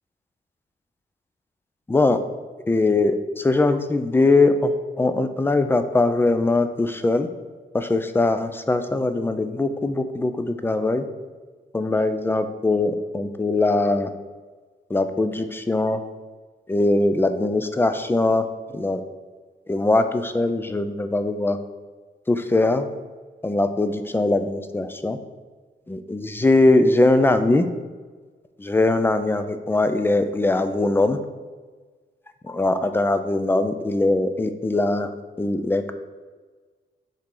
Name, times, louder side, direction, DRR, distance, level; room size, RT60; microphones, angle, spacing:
voice 1, 1.9-2.2 2.7-7.3 7.7-11.0 11.7-14.1 14.9-16.0 16.7-18.5 18.7-19.0 19.7-21.6 22.3-22.9 23.4-25.2 25.9-27.7 28.6-31.2 32.4-35.1 35.4-35.9, left 2 dB, 10° left, 9 dB, 0.3 m, -21 dB
7.1 x 3.8 x 3.7 m, 1.4 s
wide cardioid pair, 145°, 19 cm